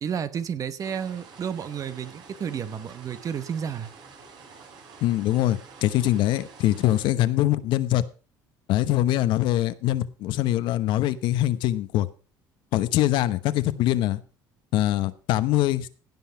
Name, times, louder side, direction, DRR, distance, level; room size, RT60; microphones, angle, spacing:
voice 1, 0.0-3.9, right 7 dB, 45° right, 1.2 m, -31 dB
sound 1, 0.8-7.1, right 5 dB, 60° right, 4.4 m, -48 dB
voice 2, 5.0-8.0 8.7-12.1 12.7-14.2 14.7-15.9, left 14 dB, 70° left, 1.0 m, -23 dB
16.5 x 5.6 x 5.7 m
cardioid pair, 100°, 8 cm